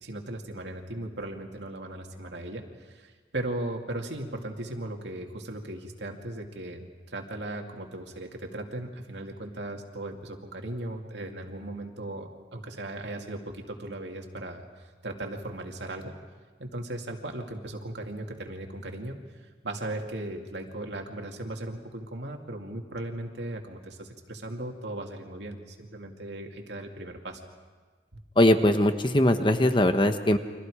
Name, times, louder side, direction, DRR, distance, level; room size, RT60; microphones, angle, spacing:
voice 1, 0.0-16.1 16.6-27.4, right 1 dB, 90° right, 2 dB, 2.5 m, -37 dB
voice 2, 28.4-30.4, left 1 dB, 30° left, 8 dB, 1.2 m, -21 dB
30.0 x 24.5 x 5.0 m, 1.4 s
head